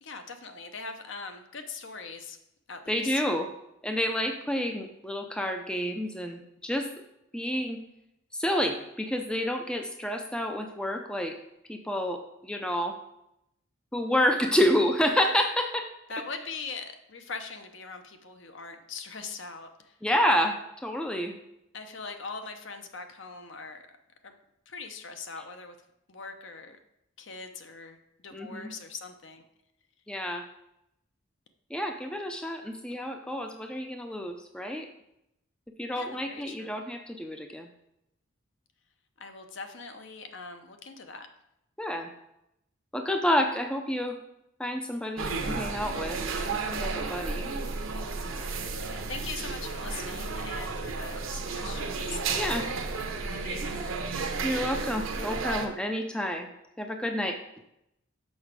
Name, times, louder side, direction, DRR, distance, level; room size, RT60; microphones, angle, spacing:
voice 1, 0.0-2.4 2.7-3.2 16.1-20.0 21.7-23.8 24.2-24.3 24.7-25.8 26.1-26.8 27.2-29.5 35.9-36.8 39.2-41.3 48.4-52.7 53.1-54.0, left 4 dB, 60° left, 7 dB, 0.8 m, -42 dB
voice 2, 2.9-3.5 3.8-6.9 7.3-7.8 8.3-11.4 11.7-13.0 13.9-15.9 20.0-20.6 20.8-21.3 28.3-28.7 30.1-30.4 31.7-34.9 35.8-37.7 41.8-42.1 42.9-44.2 44.6-46.2 46.5-47.4 52.3-52.6 54.4-56.5 56.8-57.4, equal, 5° left, 4 dB, 0.4 m, -29 dB
sound 1, 45.2-55.7, right 4 dB, 70° right, 0.9 m, -33 dB
6.3 x 5.9 x 5.1 m, 0.83 s
head